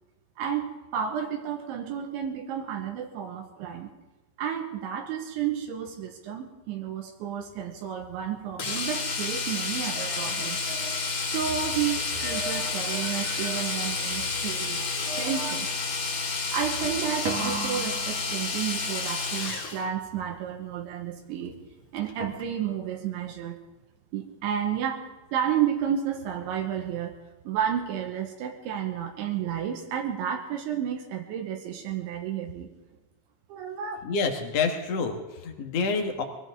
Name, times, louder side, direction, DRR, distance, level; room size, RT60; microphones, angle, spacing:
voice 1, 0.4-3.9 4.4-10.7 11.3-14.9 15.2-15.7 16.5-21.6 21.9-23.6 24.1-27.2 27.5-32.7 33.5-34.0, right 9 dB, 80° right, 3 dB, 3.6 m, -31 dB
Domestic sounds home sounds, 8.6-19.8 22.0-22.1 22.4-22.5, left 4 dB, 45° left, 3.2 m, -30 dB
sound 1, 9.7-11.6 12.1-14.5 15.0-15.9 17.3-18.9 22.2-22.9, right 3 dB, 50° right, 2.1 m, -38 dB
voice 2, 34.0-36.2, left 4 dB, 75° left, 4 dB, 1.4 m, -28 dB
23.0 x 16.0 x 3.7 m, 1.2 s
omnidirectional pair, 5.3 m